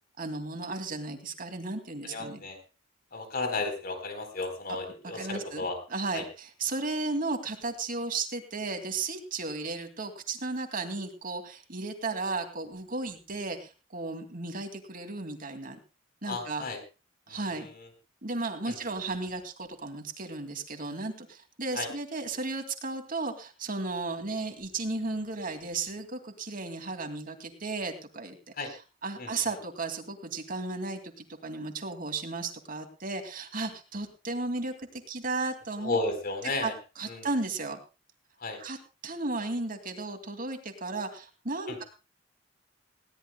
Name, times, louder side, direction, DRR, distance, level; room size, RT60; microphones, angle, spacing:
voice 1, 0.2-2.4 5.0-5.7 5.9-15.8 16.2-16.6 17.3-17.7 18.2-28.4 29.0-34.7 35.1-36.0 36.6-36.7 37.0-37.8 38.6-38.8 39.0-41.8, right 3 dB, 45° right, 6 dB, 2.5 m, -34 dB
voice 2, 2.0-2.6 3.1-5.8 6.1-6.3 16.2-16.8 17.3-17.9 18.6-18.8 21.7-21.9 28.6-28.7 29.2-29.6 35.8-36.8 37.1-37.3 38.4-38.6 41.7-41.8, left 3 dB, 50° left, 6 dB, 4.1 m, -34 dB
20.5 x 17.0 x 2.3 m, 0.31 s
head